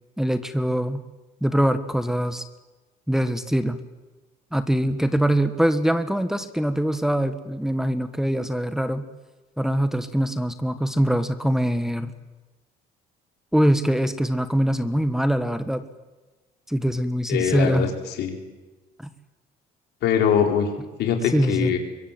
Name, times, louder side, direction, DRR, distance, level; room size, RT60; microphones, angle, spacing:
voice 1, 0.2-1.0 1.4-2.4 3.1-3.8 4.5-9.1 9.6-12.1 13.5-15.8 16.7-17.9 21.3-21.7, equal, 5° right, 9 dB, 1.4 m, -23 dB
voice 2, 17.3-18.4 20.0-20.7 21.0-21.8, left 8 dB, 80° left, 3 dB, 4.7 m, -22 dB
25.5 x 23.0 x 7.7 m, 1.2 s
cardioid pair, 110°, 17 cm